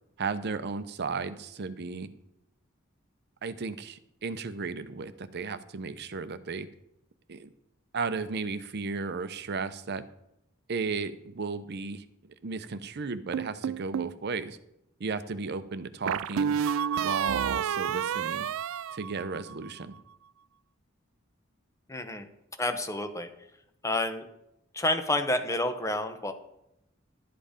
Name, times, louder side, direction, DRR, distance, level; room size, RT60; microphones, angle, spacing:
voice 1, 0.2-2.1 3.4-6.7 7.3-7.5 7.9-10.0 10.7-12.0 12.4-14.6 15.0-16.6 17.0-18.5 18.9-20.0, right 4 dB, 55° right, 12 dB, 0.7 m, -34 dB
sound 1, 13.3-14.2 16.1-19.7, right 8 dB, 75° right, 0.3 m, -30 dB
voice 2, 21.9-22.3 22.6-23.3 23.8-24.3 24.7-26.3, left 1 dB, 15° left, 7 dB, 0.9 m, -29 dB
12.0 x 7.7 x 5.1 m, 0.82 s
head